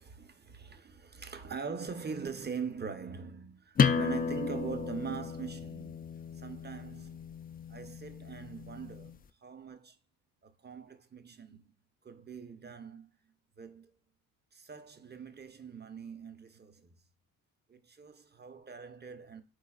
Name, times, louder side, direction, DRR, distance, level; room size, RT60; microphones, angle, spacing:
voice 1, 0.0-7.3 7.7-10.0 10.4-11.7 12.0-13.9 14.5-17.0 17.7-19.4, right 6 dB, 25° right, 0.8 m, -43 dB
sound 1, 3.8-9.2, left 6 dB, 25° left, 0.4 m, -33 dB
4.7 x 3.9 x 2.4 m
supercardioid pair, 60°, 42 cm